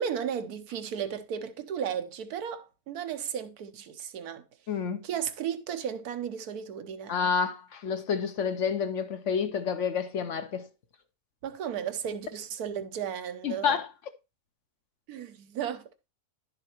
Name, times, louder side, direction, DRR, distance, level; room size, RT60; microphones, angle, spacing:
voice 1, 0.0-4.4 5.0-7.2 11.4-13.8 15.1-15.9, right 8 dB, 90° right, 1.3 m, -34 dB
voice 2, 4.7-5.0 7.1-10.7 13.4-13.9, left 6 dB, 60° left, 0.9 m, -29 dB
11.0 x 6.6 x 2.9 m
omnidirectional pair, 1.5 m